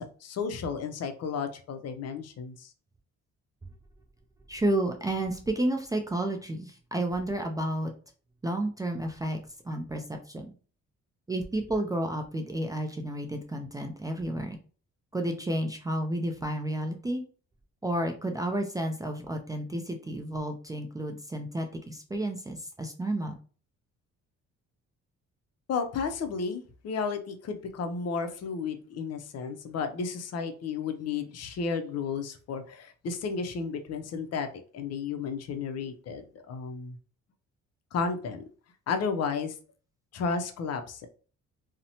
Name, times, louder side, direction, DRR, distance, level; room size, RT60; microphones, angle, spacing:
voice 1, 0.0-2.7 25.7-34.5 34.7-37.0 37.9-38.4 38.9-39.6 40.1-41.1, left 5 dB, 55° left, 7 dB, 0.5 m, -33 dB
voice 2, 4.5-7.9 8.4-9.4 9.6-10.5 11.3-14.6 15.1-17.2 17.8-23.3, right 1 dB, 10° right, 3 dB, 0.3 m, -31 dB
2.7 x 2.1 x 2.7 m, 0.39 s
cardioid pair, 90°, 30 cm